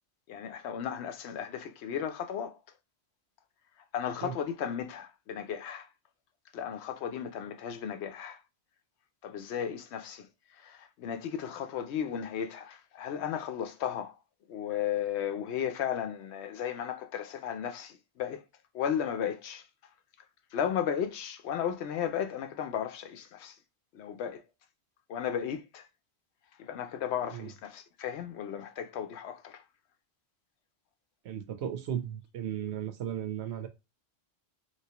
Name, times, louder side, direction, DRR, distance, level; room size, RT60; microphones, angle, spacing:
voice 1, 0.3-2.6 3.9-5.9 6.5-8.4 9.2-10.3 10.6-14.2 14.5-18.4 18.7-19.6 20.5-23.5 23.9-24.4 25.1-25.8 26.6-29.6, left 9 dB, 75° left, 0.8 m, -35 dB
voice 2, 31.2-33.7, right 10 dB, 75° right, 0.9 m, -35 dB
3.2 x 2.9 x 2.8 m
omnidirectional pair, 1.1 m